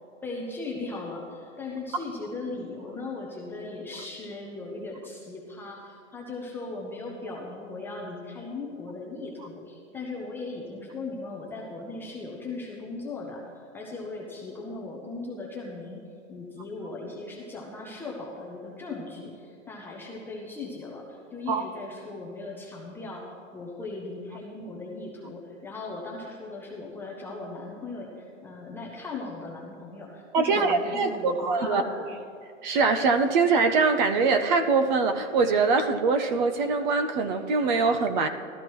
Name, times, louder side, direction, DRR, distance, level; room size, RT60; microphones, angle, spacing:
voice 1, 0.2-16.0 16.3-23.2 23.5-32.1, left 3 dB, 5° left, -3 dB, 0.4 m, -38 dB
voice 2, 30.3-31.8 32.6-38.3, right 4 dB, 40° right, 10 dB, 0.6 m, -23 dB
13.0 x 13.0 x 3.0 m, 2.4 s
hypercardioid pair, 150°, 38 cm